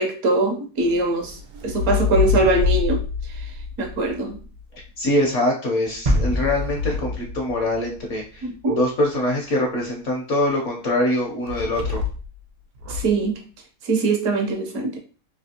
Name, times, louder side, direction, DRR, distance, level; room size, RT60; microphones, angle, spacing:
voice 1, 0.0-1.4 1.6-3.0 3.8-4.3 8.4-8.8 12.9-13.4 13.8-14.9, right 2 dB, 70° right, 3 dB, 1.0 m, -22 dB
sound 1, 0.8-4.9 5.8-8.2 11.5-12.4 12.7-13.2, left 5 dB, 85° right, 1.4 m, -27 dB
voice 2, 5.0-8.5 8.8-12.0, left 1 dB, 65° left, 0 dB, 0.8 m, -23 dB
sound 2, 6.1-7.9 8.2-8.3, equal, 50° right, 0.5 m, -25 dB
3.3 x 2.7 x 2.7 m, 0.39 s
omnidirectional pair, 1.7 m